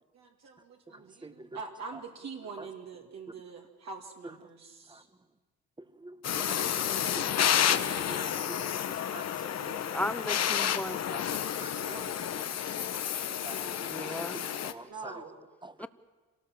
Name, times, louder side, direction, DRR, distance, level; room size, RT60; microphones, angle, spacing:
voice 1, 0.1-5.1 11.8-12.1 14.9-15.4, right 4 dB, 60° right, 1 dB, 2.3 m, -44 dB
voice 2, 6.0-7.4 7.7-10.0 10.6-11.2 11.6-11.9 13.4-14.1 14.3-15.1 15.6-15.7, right 2 dB, 15° right, 12 dB, 1.3 m, -47 dB
Torch - Full work cycle of cutting metal, 6.2-14.7, left 9 dB, 60° left, 1.1 m, -30 dB
voice 3, 9.9-11.0 13.9-14.4 15.8-15.9, left 1 dB, 5° left, 14 dB, 0.9 m, -35 dB
26.5 x 18.0 x 7.5 m, 1.4 s
cardioid pair, 90°, 30 cm